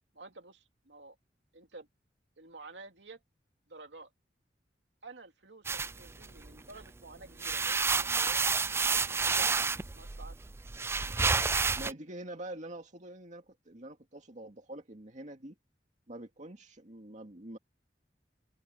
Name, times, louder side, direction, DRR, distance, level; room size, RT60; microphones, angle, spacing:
voice 1, 0.1-1.2 1.5-1.9 2.4-3.2 3.7-4.1 5.0-8.4 9.0-10.4, right 3 dB, 80° right, 2.8 m, -51 dB
sound 1, 5.7-6.8 7.2-11.9, right 4 dB, 15° right, 0.3 m, -30 dB
voice 2, 11.8-15.6 16.1-17.6, right 1 dB, 45° right, 2.1 m, -45 dB
open air
head